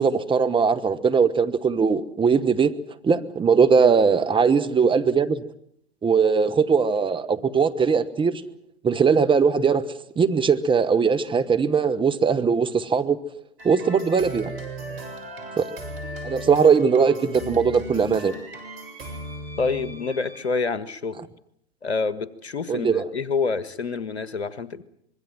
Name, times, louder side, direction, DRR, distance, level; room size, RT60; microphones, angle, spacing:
voice 1, 0.0-2.7 3.0-5.4 6.0-8.5 8.8-13.2 13.6-14.5 15.6-15.7 16.2-18.3 22.7-23.1, right 6 dB, 15° right, 9 dB, 1.3 m, -20 dB
sound 1, 13.6-20.5, right 1 dB, 65° right, 7.1 m, -37 dB
voice 2, 19.6-21.2 21.8-24.8, left 4 dB, 85° left, 15 dB, 1.6 m, -27 dB
25.5 x 22.0 x 7.7 m, 0.70 s
figure-of-eight pair, 100°, 32 cm